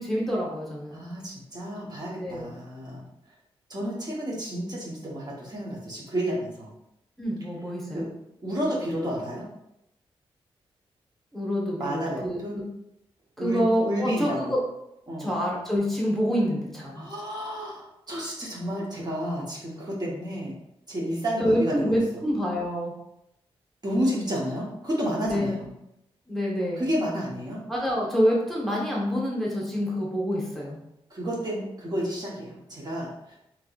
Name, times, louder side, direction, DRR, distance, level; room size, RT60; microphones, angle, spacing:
voice 1, 0.0-1.1 2.2-2.5 7.2-8.1 11.3-12.4 13.4-14.6 15.2-17.1 21.4-22.9 25.2-25.7 26.3-26.9 27.7-30.8, equal, ahead, -4 dB, 1.2 m, -27 dB
voice 2, 0.9-3.0 3.7-6.7 7.9-8.1 8.4-9.5 11.8-12.6 13.4-14.5 15.1-15.3 16.9-20.5 20.9-21.7 23.8-25.7 26.8-27.6 31.1-33.4, equal, 40° right, -5 dB, 1.1 m, -31 dB
3.5 x 3.0 x 2.4 m, 0.83 s
cardioid pair, 60°, 11 cm